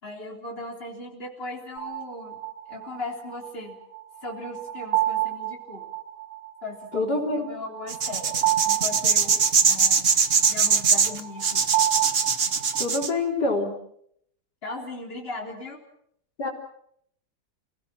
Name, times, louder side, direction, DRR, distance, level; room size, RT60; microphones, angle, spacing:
voice 1, 0.0-2.4 2.7-3.8 4.2-5.9 6.6-10.1 10.5-11.7 14.6-15.8, left 2 dB, 35° left, 0 dB, 3.9 m, -38 dB
sound 1, 1.8-13.1, right 14 dB, 70° right, 3.0 m, -30 dB
voice 2, 6.9-7.5 12.8-13.8 16.4-16.5, left 2 dB, 75° left, 0 dB, 4.5 m, -26 dB
sound 2, 7.9-13.1, right 6 dB, 40° right, 1.3 m, -21 dB
29.0 x 17.5 x 7.4 m, 0.70 s
omnidirectional pair, 1.8 m